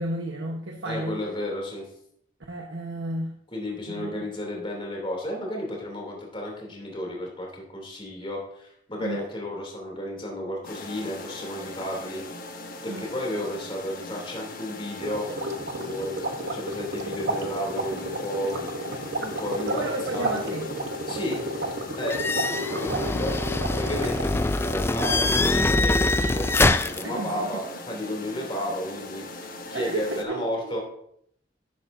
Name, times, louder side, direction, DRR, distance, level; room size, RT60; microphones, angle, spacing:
voice 1, 0.0-1.2 2.5-3.3 3.9-4.3 9.0-9.2 12.9-13.1 19.6-20.7 27.0-27.6 29.7-30.7, right 2 dB, 85° right, 0 dB, 1.2 m, -32 dB
voice 2, 0.8-1.8 3.5-12.2 12.8-15.3 15.7-18.5 19.2-20.6 21.1-21.4 22.0-23.3 23.7-30.8, equal, 30° left, -1 dB, 2.9 m, -33 dB
sound 1, 10.6-30.2, left 2 dB, 50° left, 1.1 m, -40 dB
sound 2, 15.0-24.4, right 1 dB, 60° right, 1.0 m, -32 dB
sound 3, 22.1-27.0, left 2 dB, 15° left, 0.3 m, -24 dB
12.0 x 8.6 x 2.7 m, 0.70 s
head